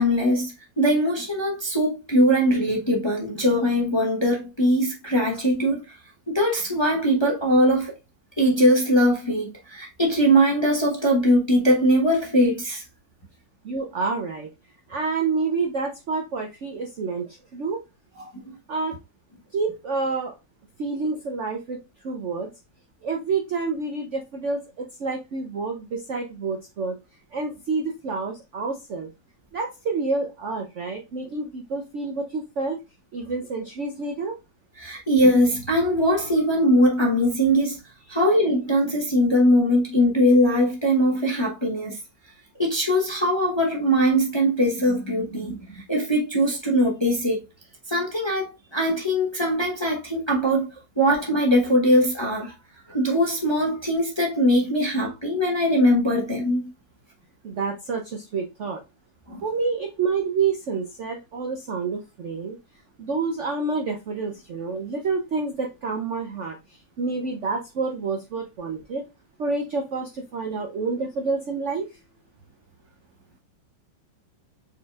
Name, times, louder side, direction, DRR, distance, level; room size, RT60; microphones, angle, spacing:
voice 1, 0.0-6.0 6.3-7.9 8.4-12.8 34.8-37.8 38.1-42.0 42.6-47.4 47.9-50.7 51.0-52.5 52.9-56.7 59.3-59.4, equal, 20° left, 0.7 m, -21 dB
voice 2, 13.6-14.5 14.9-17.8 18.7-18.9 19.5-20.3 20.8-22.5 23.0-27.0 27.3-29.1 29.5-32.8 33.1-34.4 57.4-58.8 59.4-62.6 63.0-69.0 69.4-72.0, right 4 dB, 60° right, 0.7 m, -28 dB
4.7 x 4.1 x 2.3 m
omnidirectional pair, 2.0 m